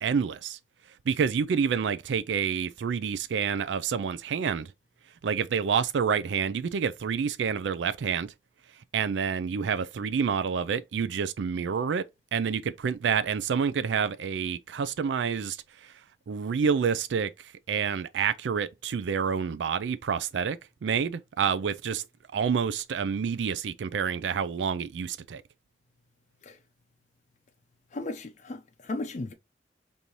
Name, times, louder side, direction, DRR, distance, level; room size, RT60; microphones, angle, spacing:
voice 1, 0.0-0.6 1.1-4.7 5.2-8.3 8.9-12.0 12.3-15.9 16.3-22.0 22.3-25.4, right 6 dB, 85° right, 0.4 m, -28 dB
voice 2, 27.9-29.3, left 2 dB, 45° left, 0.5 m, -35 dB
5.3 x 2.6 x 3.0 m
head